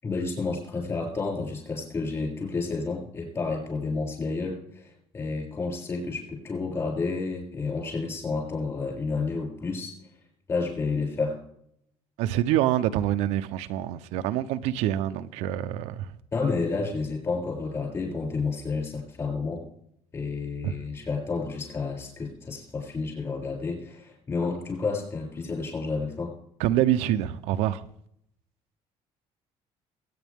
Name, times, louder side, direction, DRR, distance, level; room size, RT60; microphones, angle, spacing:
voice 1, 0.0-9.9 10.5-11.4 16.3-19.6 20.1-26.3, left 4 dB, 25° left, 6.7 m, -30 dB
voice 2, 12.2-16.1 20.6-20.7 26.6-27.9, right 12 dB, 85° right, 0.7 m, -26 dB
22.5 x 9.5 x 3.6 m
cardioid pair, 155°, 11 cm